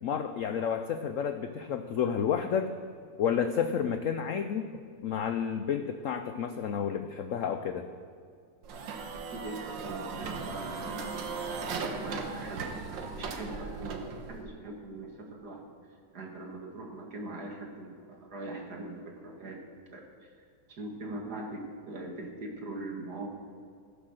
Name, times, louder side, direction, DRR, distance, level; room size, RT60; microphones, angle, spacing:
voice 1, 0.0-2.7 3.2-4.7 5.0-7.9, left 7 dB, 85° left, 8 dB, 0.7 m, -30 dB
sound 1, 8.6-14.4, right 4 dB, 75° right, 1.7 m, -37 dB
voice 2, 9.3-12.7 13.1-15.7 16.1-19.6 19.9-23.3, right 2 dB, 55° right, 1 dB, 2.3 m, -41 dB
15.5 x 8.1 x 6.6 m, 2.2 s
omnidirectional pair, 2.1 m